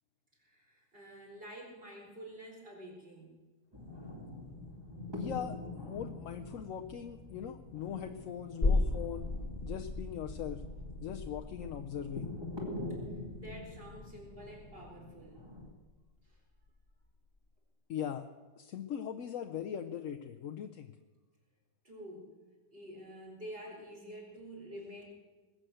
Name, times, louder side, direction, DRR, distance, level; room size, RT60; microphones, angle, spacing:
voice 1, 0.4-3.4 8.6-8.8 13.3-15.4 16.2-16.4 21.8-22.4 22.7-25.0, equal, 30° right, -2 dB, 4.5 m, -48 dB
sound 1, 3.7-15.7, left 2 dB, 15° right, 2.2 m, -45 dB
voice 2, 5.1-9.3 9.6-10.6 11.0-12.3 17.9-18.3 18.6-20.9, left 9 dB, 60° left, 5 dB, 0.9 m, -40 dB
sound 2, 8.6-15.9 16.3-16.4, left 2 dB, 30° left, 2.0 m, -36 dB
20.5 x 7.7 x 7.8 m, 1.3 s
omnidirectional pair, 1.8 m